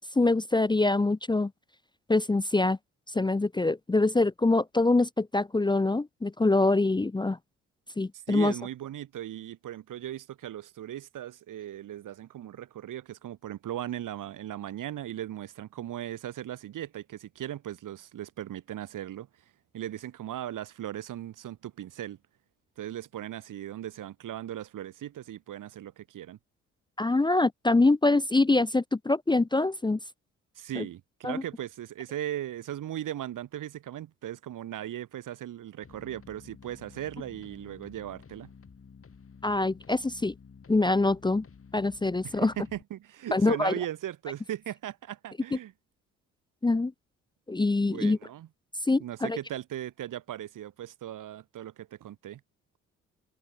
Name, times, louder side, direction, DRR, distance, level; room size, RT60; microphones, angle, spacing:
voice 1, 0.2-1.5 2.1-2.8 3.1-7.4 8.0-8.5 27.0-30.0 30.8-30.9 31.2-31.4 39.4-40.3 40.7-41.4 41.7-42.5 43.3-43.7 46.6-46.9 47.5-48.2 48.9-49.4, left 2 dB, 15° left, 0.7 m, -24 dB
voice 2, 8.1-19.3 19.7-22.2 22.8-26.4 30.6-38.5 42.2-45.7 47.8-48.5 49.0-52.4, right 12 dB, 65° right, 2.1 m, -38 dB
sound 1, 35.8-42.8, left 5 dB, 40° left, 3.9 m, -52 dB
hypercardioid pair, 50°, 34 cm